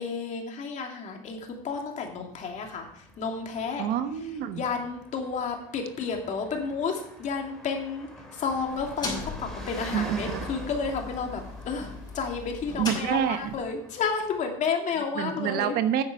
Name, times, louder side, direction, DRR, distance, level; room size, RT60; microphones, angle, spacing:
voice 1, 0.0-3.9 4.5-15.8, left 5 dB, 40° left, 2 dB, 2.7 m, -31 dB
Car passing by, 1.4-14.6, equal, 5° left, 3.1 m, -45 dB
voice 2, 3.8-4.6 9.9-10.5 12.8-13.6 15.1-16.0, right 9 dB, 60° right, 10 dB, 1.0 m, -27 dB
sound 1, 8.6-13.7, left 3 dB, 25° left, 5.3 m, -39 dB
9.7 x 8.0 x 6.5 m, 0.68 s
supercardioid pair, 115°, 18 cm